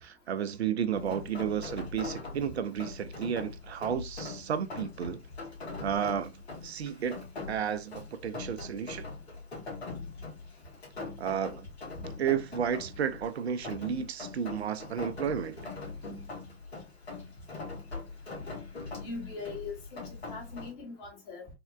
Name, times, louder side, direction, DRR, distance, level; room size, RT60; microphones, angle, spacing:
voice 1, 0.0-5.2 5.8-6.3 6.6-7.2 7.5-9.1 11.2-11.7 12.2-15.6, right 8 dB, 80° right, 0.5 m, -32 dB
Rain, 0.9-20.7, left 3 dB, 75° left, 1.3 m, -42 dB
voice 2, 18.9-21.5, left 4 dB, 35° left, 1.0 m, -41 dB
3.5 x 2.2 x 2.2 m
figure-of-eight pair, 105°, 32 cm